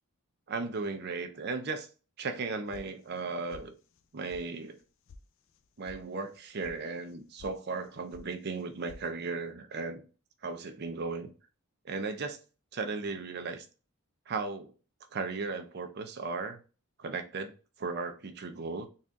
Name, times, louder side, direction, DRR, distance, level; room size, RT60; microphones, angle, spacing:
voice 1, 0.5-1.9 2.2-3.7 4.1-4.8 5.8-10.0 10.4-11.3 11.8-12.4 12.7-13.7 14.3-14.7 15.1-16.6 17.0-17.5 17.8-18.9, right 4 dB, 50° right, 7 dB, 0.5 m, -36 dB
sound 1, 2.7-3.2 3.5-4.0 4.3-4.4 4.8-5.2 5.5-6.0 6.3-6.7 7.1-7.5 7.8-8.3 8.5-9.0, left 3 dB, 60° left, 0.4 m, -51 dB
4.2 x 2.5 x 3.5 m, 0.35 s
head